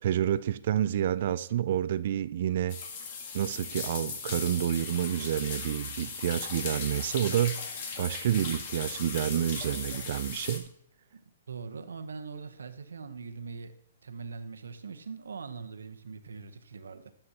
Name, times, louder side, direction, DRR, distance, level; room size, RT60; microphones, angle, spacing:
voice 1, 0.0-2.8 3.3-7.6 8.0-10.7, right 11 dB, 55° right, 0.4 m, -29 dB
sound 1, 2.7-10.6, left 5 dB, 50° left, 1.6 m, -38 dB
voice 2, 11.5-13.7 14.0-17.1, right 5 dB, 90° right, 0.9 m, -42 dB
13.0 x 6.9 x 2.9 m
hypercardioid pair, 145°, 0 cm